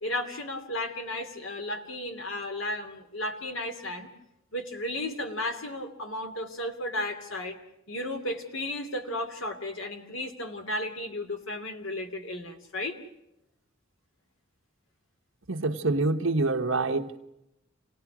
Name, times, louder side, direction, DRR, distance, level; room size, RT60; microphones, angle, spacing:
voice 1, 0.0-4.1 4.5-7.6 7.9-13.0, left 1 dB, 80° left, 5 dB, 2.7 m, -34 dB
voice 2, 15.5-17.2, right 2 dB, 80° right, 6 dB, 1.3 m, -26 dB
27.5 x 18.5 x 6.1 m, 0.86 s
head